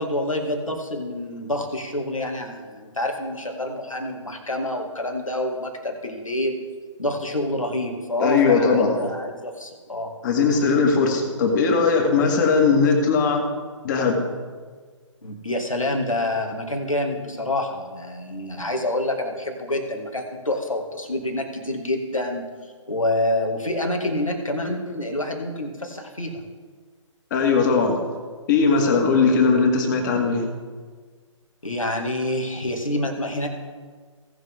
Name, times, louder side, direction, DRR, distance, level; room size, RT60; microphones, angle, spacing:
voice 1, 0.0-6.6 7.0-10.1 15.2-22.5 22.9-26.4 31.6-33.5, left 1 dB, 85° left, 2 dB, 2.2 m, -27 dB
voice 2, 8.2-9.0 10.2-13.4 13.8-14.2 27.3-28.0 28.5-30.5, left 4 dB, 35° left, 1 dB, 2.2 m, -19 dB
17.5 x 6.5 x 3.7 m, 1.5 s
figure-of-eight pair, 135°, 17 cm